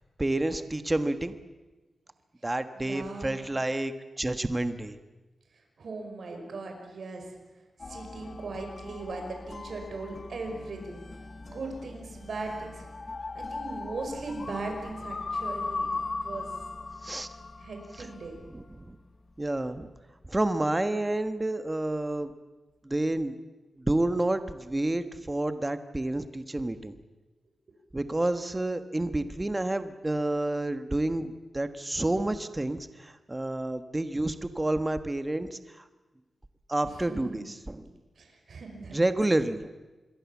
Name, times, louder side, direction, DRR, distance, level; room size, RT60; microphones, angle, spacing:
voice 1, 0.2-1.4 2.4-5.0 17.0-17.3 18.5-19.0 19.4-19.9 20.3-22.3 22.8-23.4 23.8-26.9 27.9-35.8 36.7-37.9 38.9-39.7, right 1 dB, 15° right, 10 dB, 1.3 m, -29 dB
voice 2, 2.7-3.4 5.5-7.4 7.8-11.0 11.4-12.9 13.3-15.9 16.2-16.5 17.6-18.4 37.0-37.5 38.2-39.0, right 3 dB, 65° right, 3 dB, 5.5 m, -39 dB
sound 1, 7.8-18.8, left 3 dB, 35° left, 1.0 m, -39 dB
27.0 x 22.0 x 7.3 m, 1.2 s
wide cardioid pair, 110°, 0 cm